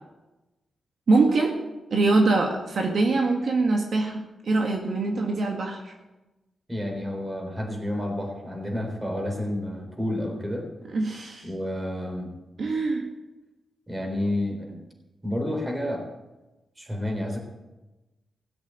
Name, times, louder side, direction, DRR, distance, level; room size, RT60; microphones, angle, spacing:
voice 1, 1.1-1.5 1.9-5.9 10.9-11.5 12.6-13.0, right 3 dB, 60° right, 1 dB, 2.0 m, -23 dB
voice 2, 6.7-10.7 11.4-12.3 13.9-14.8 15.2-16.1 16.8-17.4, left 1 dB, 15° right, 3 dB, 4.0 m, -30 dB
17.5 x 8.1 x 8.9 m, 1.1 s
wide cardioid pair, 110°, 0 cm